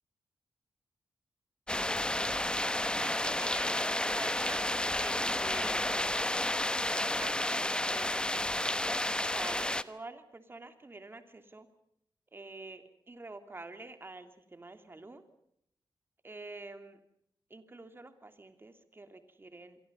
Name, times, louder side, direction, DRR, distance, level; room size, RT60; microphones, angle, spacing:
sound 1, 1.7-9.8, left 1 dB, 10° left, 1.0 m, -31 dB
voice 1, 3.0-5.9 7.1-8.6 9.2-11.7 12.3-15.2 16.2-17.0 17.5-19.8, right 2 dB, 25° right, 8 dB, 3.0 m, -48 dB
27.5 x 23.0 x 5.5 m, 0.73 s
wide cardioid pair, 100°, 9 cm